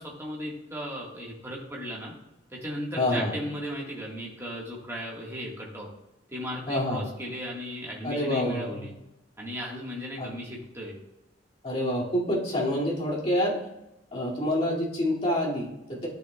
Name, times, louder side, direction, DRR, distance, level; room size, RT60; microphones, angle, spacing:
voice 1, 0.0-2.1 2.5-5.9 6.3-8.9 9.4-10.9, equal, 15° right, -4 dB, 1.6 m, -36 dB
voice 2, 3.0-3.4 6.7-7.1 8.0-8.9 10.2-10.3 11.6-13.6 14.1-16.1, left 1 dB, 35° left, -6 dB, 2.4 m, -27 dB
12.0 x 6.6 x 2.3 m, 0.92 s
head